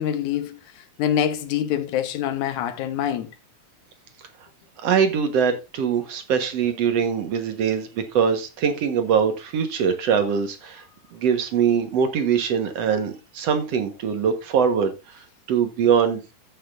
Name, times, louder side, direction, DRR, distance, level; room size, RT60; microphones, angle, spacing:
voice 1, 0.0-3.3, left 10 dB, 85° left, 2.5 m, -25 dB
voice 2, 4.8-10.8 11.1-15.2 15.5-16.2, right 7 dB, 60° right, 2.3 m, -22 dB
14.5 x 6.7 x 2.6 m
omnidirectional pair, 3.4 m